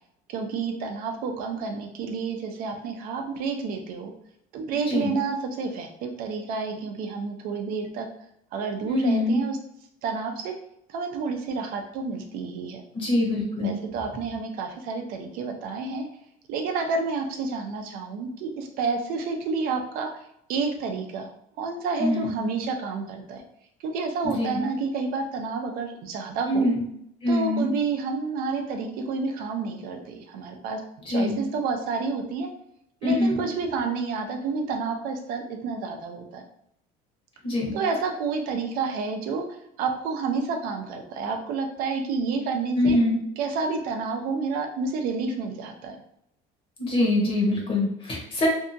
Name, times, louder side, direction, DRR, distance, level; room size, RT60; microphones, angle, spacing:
voice 1, 0.3-4.1 4.5-8.1 8.5-9.6 10.0-10.6 10.9-12.8 13.6-16.1 16.5-21.3 21.6-23.4 23.8-26.7 27.3-30.8 31.1-32.5 33.0-36.4 37.7-43.0 43.4-46.0, right 4 dB, 65° right, 4 dB, 0.5 m, -29 dB
voice 2, 8.9-9.4 12.9-13.8 22.0-22.3 24.2-24.6 26.5-26.8 27.2-27.7 31.1-31.4 33.0-33.4 37.4-37.7 42.8-43.2 46.8-48.5, left 1 dB, 35° left, -2 dB, 0.9 m, -24 dB
2.7 x 2.4 x 2.6 m, 0.75 s
cardioid pair, 150°, 16 cm